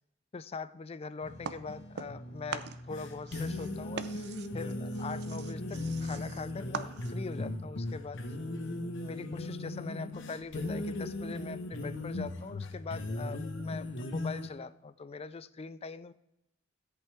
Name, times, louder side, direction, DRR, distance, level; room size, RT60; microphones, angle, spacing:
voice 1, 0.3-8.2 9.0-16.1, left 4 dB, 30° left, 15 dB, 0.4 m, -42 dB
sound 1, 1.2-14.5, left 2 dB, 65° left, 1.1 m, -38 dB
sound 2, 1.4-2.2 2.5-7.4, right 6 dB, 55° right, 0.6 m, -43 dB
13.5 x 8.3 x 3.5 m, 0.81 s
head